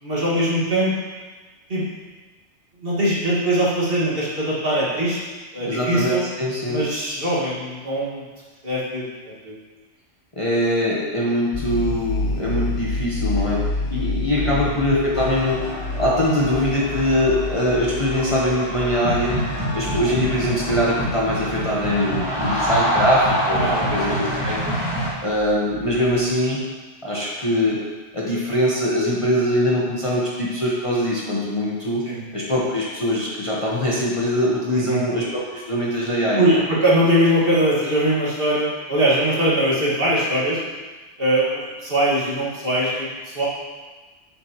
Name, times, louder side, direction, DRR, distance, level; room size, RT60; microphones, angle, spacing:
voice 1, 0.0-0.9 1.7-1.8 2.8-5.2 5.5-6.2 6.7-8.3 8.6-9.0 9.4-9.5 14.4-14.7 23.6-24.3 32.0-32.2 34.7-35.0 36.4-40.6 41.2-43.5, right 1 dB, 45° right, -7 dB, 2.0 m, -21 dB
voice 2, 5.6-6.8 7.1-7.2 10.4-15.7 15.9-19.4 19.7-24.6 25.2-26.6 27.0-27.9 28.1-32.0 32.3-36.6, left 1 dB, 25° left, -6 dB, 1.1 m, -22 dB
sound 1, 11.5-26.2, left 2 dB, 55° left, 0.5 m, -30 dB
sound 2, 15.1-25.1, equal, 15° right, 1.8 m, -26 dB
8.1 x 7.2 x 3.0 m, 1.3 s
omnidirectional pair, 1.3 m